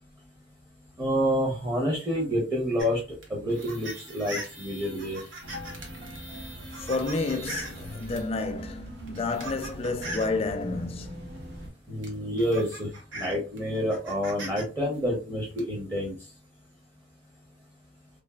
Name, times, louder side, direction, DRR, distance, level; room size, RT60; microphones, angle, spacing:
voice 1, 1.0-3.0 3.3-5.2 11.9-16.2, equal, 15° right, 0.6 m, -28 dB
sound 1, 2.8-8.3 9.0-10.4 11.6-11.7 12.0-14.6 14.9-15.6, right 1 dB, 90° right, 0.9 m, -41 dB
sound 2, 5.4-11.7, equal, 65° right, 0.7 m, -42 dB
voice 2, 6.8-11.3, left 3 dB, 30° left, 0.4 m, -30 dB
3.2 x 2.2 x 2.2 m
head